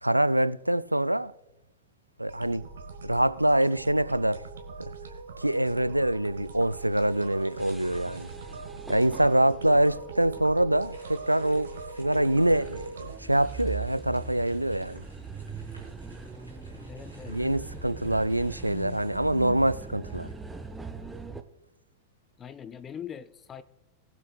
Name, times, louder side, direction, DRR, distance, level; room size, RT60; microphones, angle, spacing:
voice 1, 0.0-1.3 2.2-2.7 3.0-4.4 4.8-4.9 5.4-8.3 8.9-15.0 17.3-20.3, right 1 dB, 85° right, 0.3 m, -25 dB
sound 1, 2.3-13.2, right 4 dB, 65° right, 1.5 m, -42 dB
sound 2, 6.2-8.7 9.3-9.4 10.7-20.5, right 1 dB, 90° left, 3.4 m, -57 dB
sound 3, 7.5-21.4, right 4 dB, 10° right, 0.8 m, -42 dB
voice 2, 16.9-17.4 22.4-23.6, left 8 dB, 25° left, 0.4 m, -42 dB
20.0 x 7.5 x 2.3 m
figure-of-eight pair, 90°, 0 cm